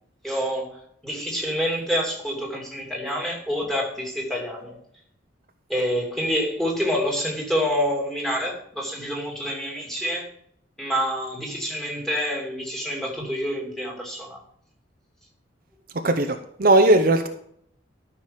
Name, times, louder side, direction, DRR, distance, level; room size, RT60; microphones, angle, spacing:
voice 1, 0.2-0.8 1.0-4.8 5.7-10.3 10.8-14.4, equal, ahead, -1 dB, 2.6 m, -27 dB
voice 2, 15.9-17.3, right 2 dB, 50° right, 6 dB, 0.7 m, -18 dB
13.0 x 6.1 x 5.2 m, 0.68 s
head